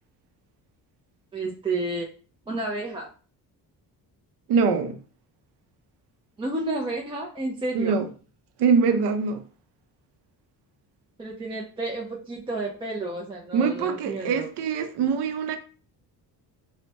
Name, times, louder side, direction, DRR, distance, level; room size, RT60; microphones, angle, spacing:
voice 1, 1.3-2.1 2.5-3.1 6.4-8.0 11.2-14.5, right 2 dB, 15° right, 0.3 m, -31 dB
voice 2, 4.5-5.0 7.7-8.1 8.6-9.4 13.5-15.6, right 5 dB, 85° right, 0.6 m, -23 dB
4.4 x 2.1 x 2.6 m
cardioid pair, 145°, 39 cm